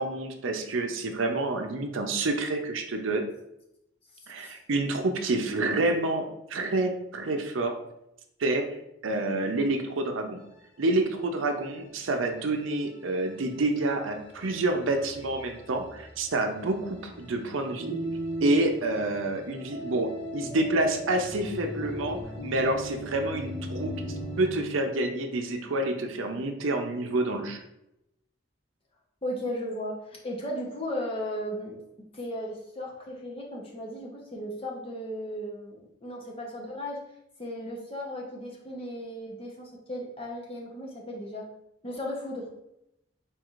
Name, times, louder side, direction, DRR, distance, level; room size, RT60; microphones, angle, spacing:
voice 1, 0.0-3.2 4.3-7.7 8.4-8.7 9.0-10.4 10.8-18.0 18.4-27.6, right 2 dB, 80° right, 5 dB, 0.6 m, -28 dB
sound 1, 10.4-24.5, left 1 dB, 65° left, 1.2 m, -44 dB
sound 2, 17.8-18.6 19.7-24.8, right 1 dB, 40° right, 1.0 m, -37 dB
voice 2, 29.2-31.8 32.1-37.0 37.4-41.5 41.8-42.5, equal, 30° left, -2 dB, 0.9 m, -36 dB
4.6 x 4.2 x 2.5 m, 0.83 s
head